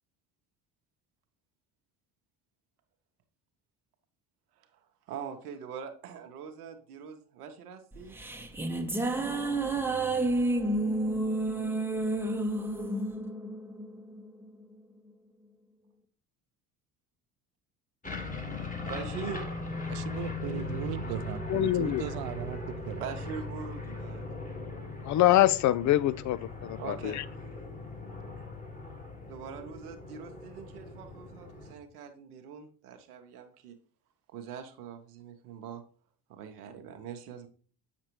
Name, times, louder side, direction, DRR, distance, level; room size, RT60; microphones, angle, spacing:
voice 1, 5.1-8.2 18.8-19.4 23.0-24.4 26.8-27.2 29.3-33.7 34.3-35.8 36.3-37.5, right 6 dB, 80° right, 0.9 m, -42 dB
sound 1, 7.9-14.5, right 2 dB, 5° right, 0.8 m, -30 dB
sound 2, 18.0-31.7, left 3 dB, 15° left, 1.6 m, -39 dB
voice 2, 19.9-23.0, right 13 dB, 55° right, 0.5 m, -38 dB
voice 3, 21.5-22.0 25.0-27.2, left 14 dB, 40° left, 0.5 m, -25 dB
7.5 x 6.0 x 3.0 m
hypercardioid pair, 60°, 45 cm